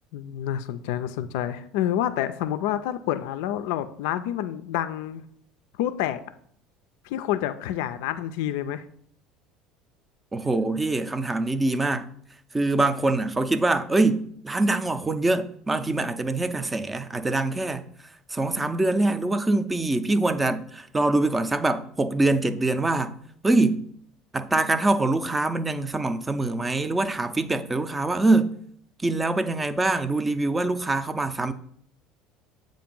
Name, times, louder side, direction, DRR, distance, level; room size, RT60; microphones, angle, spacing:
voice 1, 0.1-5.2 5.8-6.2 7.0-8.8, left 11 dB, 80° left, 0.3 m, -28 dB
voice 2, 10.3-12.1 12.5-17.8 18.3-23.2 23.4-23.9 24.3-28.5 29.0-31.5, right 2 dB, 15° right, 0.4 m, -24 dB
7.5 x 2.6 x 5.3 m
supercardioid pair, 110°, 0 cm